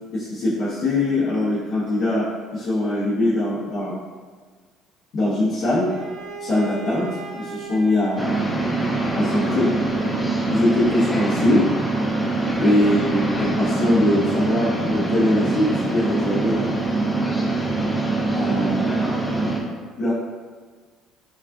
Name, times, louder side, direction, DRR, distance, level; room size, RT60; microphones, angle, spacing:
voice 1, 0.1-4.0 5.1-5.9 6.4-7.1 7.4-8.3 9.1-9.7 10.5-11.7 12.6-16.7 18.3-19.0 20.0-20.1, left 1 dB, 60° left, -12 dB, 1.2 m, -22 dB
Bowed string instrument, 5.8-10.7, right 5 dB, 70° right, 0.8 m, -39 dB
sound 1, 8.2-19.6, right 2 dB, 10° left, 0.5 m, -23 dB
5.2 x 2.4 x 2.7 m, 1.5 s
cardioid pair, 125°, 0 cm